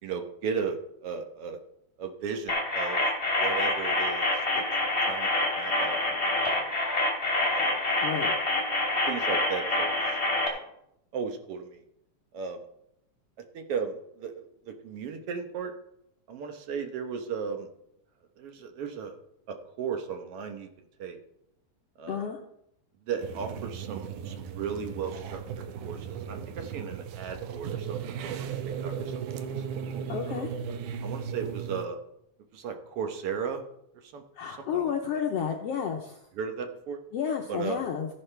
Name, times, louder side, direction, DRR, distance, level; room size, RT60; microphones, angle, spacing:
voice 1, 0.0-1.6 2.0-3.0 3.4-4.3 4.5-6.7 7.4-7.8 8.3-8.4 9.1-10.6 11.1-11.8 12.3-12.6 13.5-15.7 16.3-17.7 18.4-19.2 19.5-20.7 21.0-21.2 22.0-22.3 23.0-28.5 28.8-29.5 30.3-30.5 31.0-32.0 32.5-33.6 34.0-35.2 36.3-37.0 37.5-37.8, right 6 dB, 60° right, 5 dB, 1.7 m, -36 dB
sound 1, 2.5-10.5, left 2 dB, 20° left, 3.0 m, -27 dB
voice 2, 8.0-8.3 22.1-22.4 30.1-30.5 34.4-36.2 37.1-38.1, left 7 dB, 70° left, 2 dB, 1.6 m, -31 dB
sound 2, 23.2-31.9, right 7 dB, 90° right, 2.3 m, -36 dB
15.0 x 10.5 x 3.3 m, 0.78 s
omnidirectional pair, 3.5 m